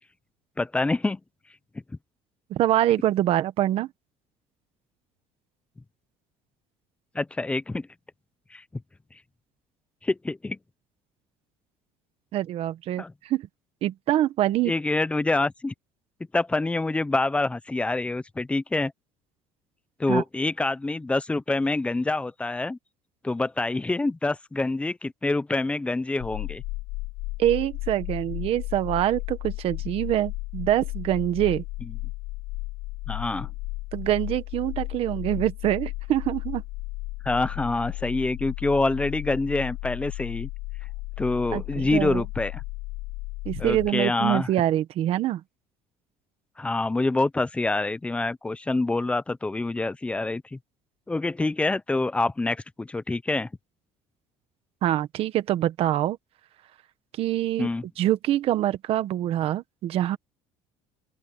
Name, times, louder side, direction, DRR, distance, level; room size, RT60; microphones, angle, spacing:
voice 1, 0.6-1.2 7.1-7.9 8.5-8.6 10.0-10.6 13.0-13.1 14.7-15.7 16.3-18.9 20.0-22.8 23.2-26.6 33.1-33.5 37.2-40.5 41.2-42.6 43.6-44.5 46.6-50.6 51.1-53.5 57.6-57.8, left 2 dB, 10° left, 0.7 m, -26 dB
voice 2, 2.5-3.9 12.3-13.4 13.8-14.7 20.1-20.2 27.4-31.6 33.9-36.6 41.5-42.2 43.4-45.4 54.8-56.2 57.2-57.7 58.0-60.2, right 13 dB, 55° right, 1.4 m, -25 dB
sound 1, 26.2-43.9, left 21 dB, 85° left, 6.9 m, -34 dB
open air
cardioid pair, 145°, 12 cm